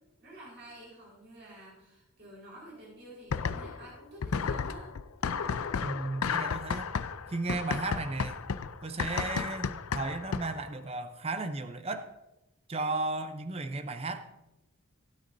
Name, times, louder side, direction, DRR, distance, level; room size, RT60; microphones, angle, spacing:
voice 1, 0.2-4.9, right 1 dB, 50° right, -5 dB, 4.4 m, -50 dB
sound 1, 3.3-3.9 4.2-10.7, left 6 dB, 85° left, 0.5 m, -33 dB
voice 2, 5.8-6.9 7.3-8.4 8.8-12.1 12.7-14.4, right 3 dB, 30° right, 8 dB, 0.6 m, -35 dB
16.5 x 9.2 x 2.7 m, 0.94 s
head